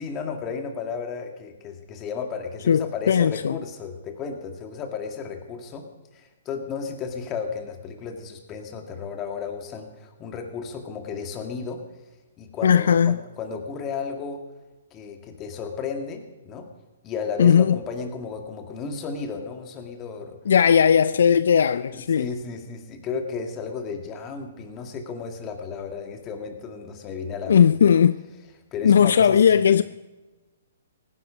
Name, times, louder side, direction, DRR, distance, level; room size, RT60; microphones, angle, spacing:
voice 1, 0.0-5.9 6.1-11.8 12.4-14.4 14.9-16.7 17.0-20.4 21.3-21.4 21.9-27.9 28.7-29.7, left 5 dB, 25° left, 1.9 m, -34 dB
voice 2, 2.7-3.6 12.6-13.1 17.4-17.8 20.5-22.3 27.5-28.2 28.8-29.8, left 7 dB, 70° left, 0.4 m, -17 dB
17.0 x 10.5 x 5.1 m
hypercardioid pair, 135°, 0 cm